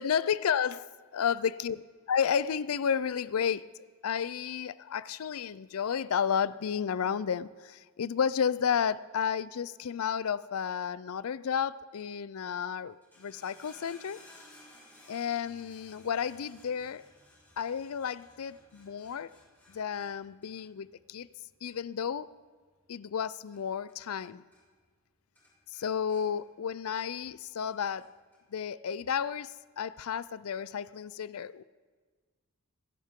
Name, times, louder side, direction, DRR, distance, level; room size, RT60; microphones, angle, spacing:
voice 1, 0.0-1.8 2.1-3.7 4.0-14.2 15.1-17.0 17.6-19.3 19.7-21.3 21.6-22.3 22.9-24.4 25.7-28.1 28.5-31.6, left 7 dB, 80° left, 0.4 m, -32 dB
sound 1, 12.9-24.3 24.5-25.1 25.4-27.3 27.7-28.4 29.1-29.2, left 1 dB, 10° left, 6.1 m, -59 dB
26.5 x 11.0 x 3.7 m
head